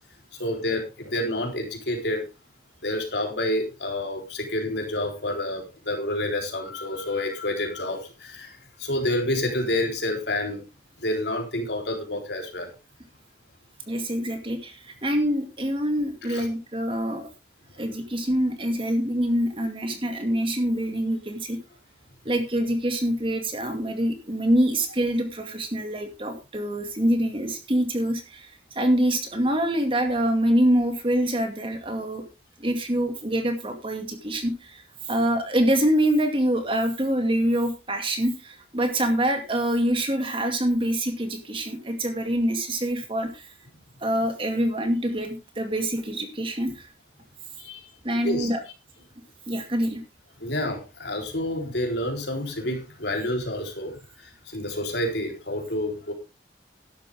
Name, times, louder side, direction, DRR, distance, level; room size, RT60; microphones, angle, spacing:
voice 1, 0.3-2.3 2.8-10.6 11.0-12.7 16.3-16.5 47.6-47.8 48.2-48.5 50.4-56.1, left 1 dB, 70° left, 2 dB, 4.0 m, -29 dB
voice 2, 13.9-17.3 17.8-21.6 22.2-32.2 32.6-43.5 44.0-46.9 48.0-48.6 49.5-50.0, right 1 dB, 30° right, 5 dB, 2.3 m, -25 dB
13.0 x 11.5 x 3.6 m, 0.28 s
head